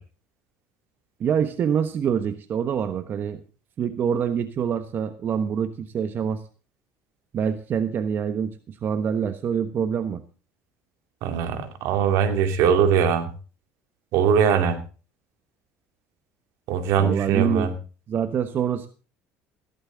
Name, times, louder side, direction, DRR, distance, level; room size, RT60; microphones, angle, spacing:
voice 1, 1.2-3.4 3.8-6.4 7.3-10.2 17.0-17.7 18.1-18.9, right 7 dB, 45° right, 10 dB, 1.1 m, -25 dB
voice 2, 11.2-13.3 14.1-14.8 16.7-17.7, right 7 dB, 70° right, 8 dB, 2.5 m, -21 dB
15.5 x 13.0 x 3.9 m, 0.36 s
cardioid pair, 115°, 5 cm